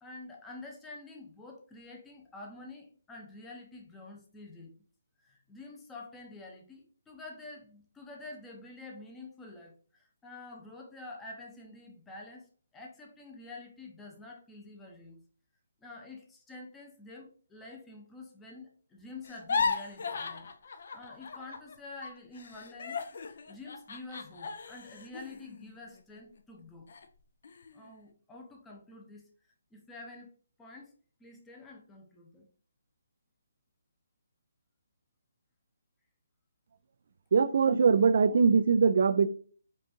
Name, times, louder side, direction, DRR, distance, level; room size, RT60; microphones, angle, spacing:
voice 1, 0.0-4.8 5.2-15.2 15.8-26.9 27.7-29.3 29.7-30.3 30.6-30.9 31.2-32.5, left 2 dB, 10° left, 0.7 m, -48 dB
sound 1, 19.2-21.8 22.0-26.4 26.9-27.1 27.4-27.9, left 5 dB, 55° left, 0.4 m, -36 dB
voice 2, 37.3-39.3, right 5 dB, 55° right, 0.3 m, -22 dB
5.2 x 2.5 x 2.7 m
hypercardioid pair, 160°, 0 cm